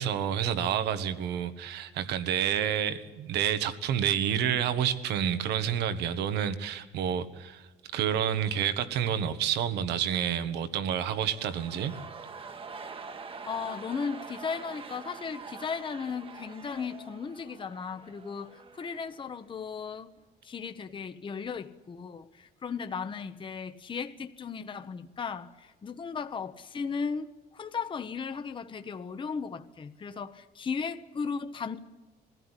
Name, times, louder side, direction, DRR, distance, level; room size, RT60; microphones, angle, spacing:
voice 1, 0.0-7.7 7.9-11.9, right 9 dB, 80° right, 1.6 m, -29 dB
sound 1, 11.2-19.3 19.5-19.6, right 5 dB, 35° right, 1.3 m, -45 dB
voice 2, 13.5-20.1 20.4-31.8, left 5 dB, 30° left, 1.0 m, -36 dB
21.5 x 16.0 x 10.0 m
cardioid pair, 110°, 17 cm